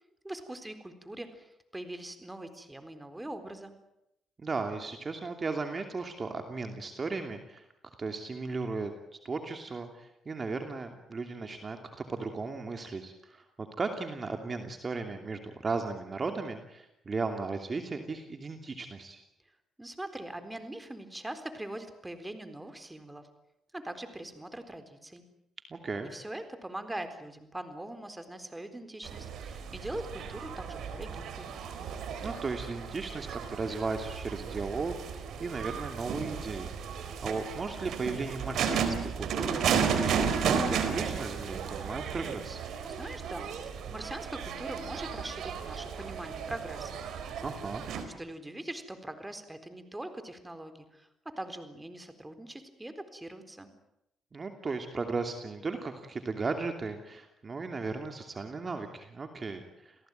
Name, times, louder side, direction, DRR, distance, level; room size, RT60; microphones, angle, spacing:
voice 1, 0.2-3.7 19.8-23.3 23.7-25.2 26.1-31.5 42.8-47.0 47.9-53.7, right 1 dB, 10° right, 9 dB, 4.0 m, -42 dB
voice 2, 4.4-7.6 8.0-8.9 9.2-11.8 12.1-19.2 25.7-26.1 32.2-36.8 37.2-42.6 47.4-47.8 54.3-60.0, right 4 dB, 35° right, 5 dB, 2.7 m, -36 dB
sound 1, 29.0-48.0, right 7 dB, 75° right, 4.1 m, -34 dB
29.0 x 18.0 x 9.2 m, 0.85 s
cardioid pair, 90°, 0 cm